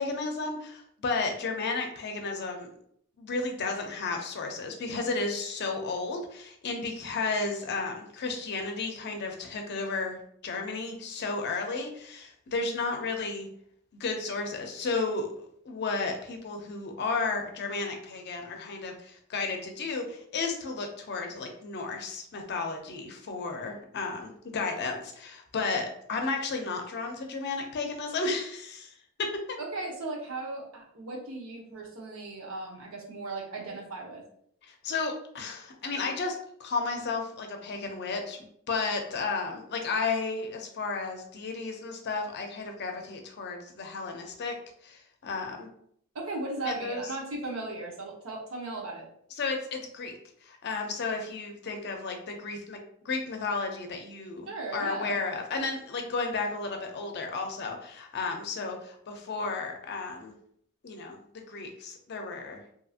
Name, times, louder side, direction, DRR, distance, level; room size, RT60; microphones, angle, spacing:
voice 1, 0.0-2.7 3.2-13.5 13.9-28.9 29.2-29.6 34.8-44.5 44.8-45.7 46.6-47.0 49.4-50.1 50.4-52.8 53.0-60.3 60.8-62.6, left 4 dB, 55° left, 4 dB, 0.5 m, -33 dB
voice 2, 29.6-34.2 46.1-49.0 54.5-55.2, right 2 dB, 80° right, -2 dB, 0.8 m, -37 dB
2.7 x 2.7 x 2.4 m, 0.67 s
head